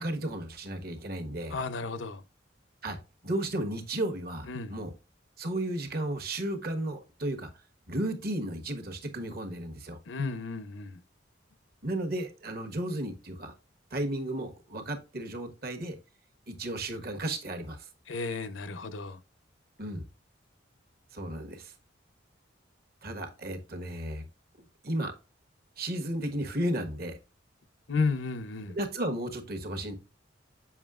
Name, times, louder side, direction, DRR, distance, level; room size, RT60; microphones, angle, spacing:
voice 1, 0.0-1.6 2.8-3.0 3.2-4.9 5.4-7.5 7.9-10.0 11.8-13.5 13.9-16.0 16.5-17.9 19.8-20.0 21.1-21.7 23.0-24.2 24.8-25.1 25.8-27.2 28.7-29.9, right 1 dB, 55° right, 1.2 m, -34 dB
voice 2, 1.5-2.2 4.5-4.8 10.1-11.0 18.1-19.2 27.9-28.8, left 4 dB, 75° left, 0.7 m, -33 dB
7.1 x 5.5 x 2.4 m
head